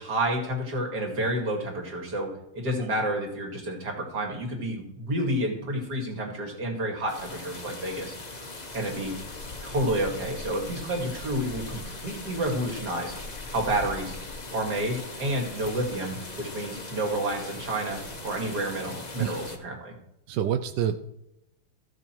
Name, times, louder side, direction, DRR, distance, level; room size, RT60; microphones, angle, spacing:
voice 1, 0.0-8.1 8.7-9.2 9.6-13.1 13.5-14.2 14.5-19.9, right 1 dB, 50° right, 1 dB, 2.8 m, -30 dB
sound 1, 7.1-19.6, left 2 dB, 25° left, 1.0 m, -40 dB
voice 2, 20.3-21.1, right 9 dB, 70° right, 9 dB, 1.1 m, -27 dB
14.5 x 6.8 x 4.5 m, 0.85 s
omnidirectional pair, 2.3 m